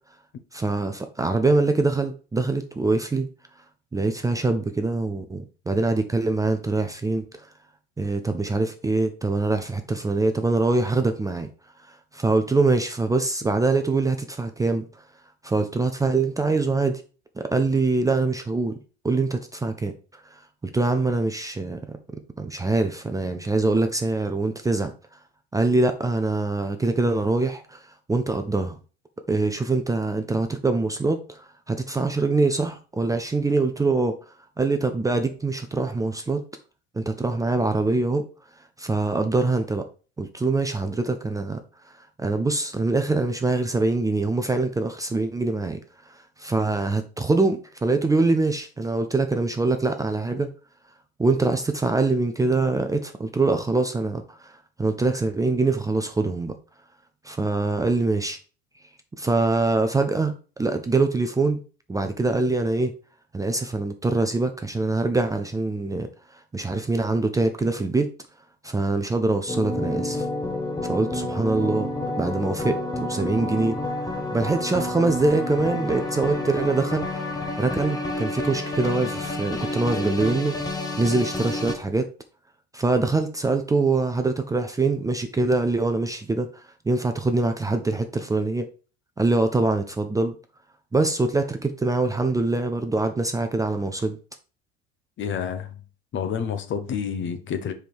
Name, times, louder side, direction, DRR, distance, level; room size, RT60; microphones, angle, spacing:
voice 1, 0.5-3.3 3.9-7.5 8.0-11.5 12.1-14.8 15.4-17.0 17.4-18.8 19.0-22.0 22.4-24.9 25.5-27.8 28.1-28.8 29.3-34.2 34.6-36.4 36.9-38.3 38.8-39.9 40.2-41.6 42.2-45.8 46.1-50.5 51.2-56.5 57.2-58.4 59.2-61.6 61.9-62.9 63.3-68.1 68.6-70.3 70.8-73.8 74.3-77.1 77.6-80.6 81.0-82.1 82.7-88.7 89.2-90.3 90.9-94.2, right 3 dB, 10° right, 0.7 m, -24 dB
sound 1, 69.5-81.7, left 2 dB, 10° left, 1.1 m, -29 dB
voice 2, 95.2-95.8 96.1-97.7, left 7 dB, 40° left, 1.0 m, -29 dB
5.1 x 4.8 x 4.4 m
hypercardioid pair, 80°, 30 cm